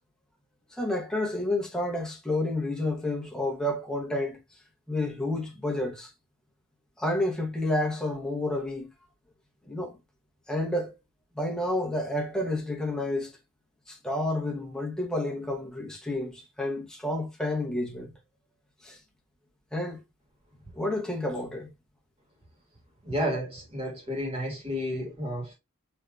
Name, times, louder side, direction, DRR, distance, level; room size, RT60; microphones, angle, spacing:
voice 1, 0.7-4.4 4.9-6.1 7.0-8.9 9.7-9.9 10.5-10.9 11.4-13.3 13.9-18.1 18.8-19.0 19.7-20.0 20.7-21.7, left 1 dB, 5° left, 0.7 m, -30 dB
voice 2, 23.0-25.5, equal, 30° right, 1.6 m, -31 dB
3.3 x 2.7 x 2.4 m
head